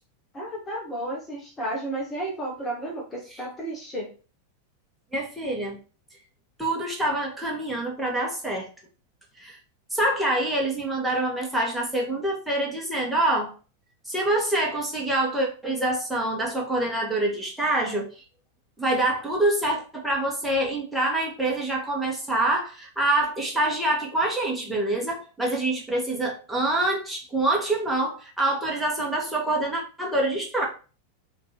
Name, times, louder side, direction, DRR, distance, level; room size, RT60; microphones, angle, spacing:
voice 1, 0.3-4.1, right 1 dB, 20° left, -1 dB, 1.5 m, -32 dB
voice 2, 5.1-5.8 6.6-8.7 9.4-9.6 9.9-13.5 14.1-18.1 18.8-30.7, right 1 dB, ahead, -2 dB, 1.8 m, -26 dB
6.9 x 3.1 x 4.4 m, 0.36 s
figure-of-eight pair, 90°, 0 cm